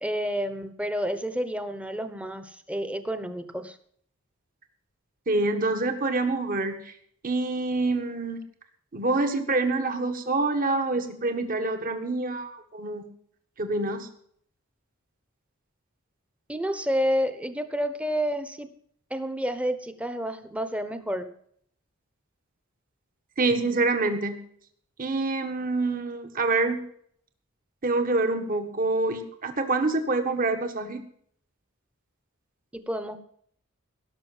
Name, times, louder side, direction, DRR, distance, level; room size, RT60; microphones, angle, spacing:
voice 1, 0.0-3.8 16.5-18.7 19.1-21.3 32.7-33.2, equal, 5° right, 9 dB, 1.1 m, -29 dB
voice 2, 5.3-6.9 7.2-8.4 8.9-13.1 13.6-14.1 23.4-24.4 25.0-26.8 27.8-31.0, right 3 dB, 45° right, 6 dB, 1.7 m, -26 dB
17.0 x 6.6 x 7.3 m, 0.63 s
head